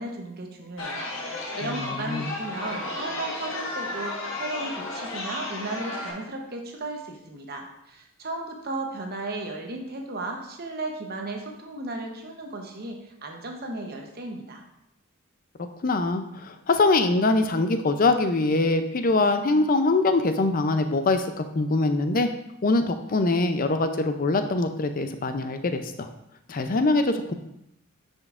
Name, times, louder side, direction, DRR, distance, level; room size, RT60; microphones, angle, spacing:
voice 1, 0.0-14.6, right 2 dB, 45° right, 2 dB, 0.9 m, -35 dB
Chatter, 0.8-6.1, left 2 dB, 60° left, 1.3 m, -33 dB
voice 2, 15.8-22.3 22.6-26.1 26.5-27.3, left 2 dB, 40° left, 8 dB, 0.5 m, -23 dB
9.6 x 5.2 x 2.5 m, 0.83 s
head